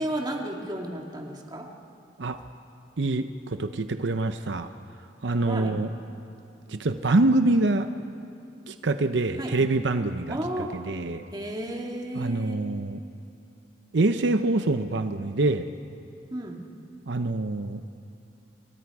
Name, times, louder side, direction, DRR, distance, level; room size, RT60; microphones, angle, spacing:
voice 1, 0.0-1.7 5.4-5.8 9.4-9.6 10.3-10.7 11.3-12.6 16.3-16.6, right 1 dB, 25° right, 1 dB, 2.1 m, -33 dB
voice 2, 3.0-4.7 5.2-5.9 6.7-7.9 8.7-10.4 10.7-11.2 12.2-13.0 13.9-15.7 17.1-17.8, right 2 dB, 80° right, 9 dB, 0.7 m, -25 dB
28.5 x 24.0 x 4.9 m, 2.7 s
head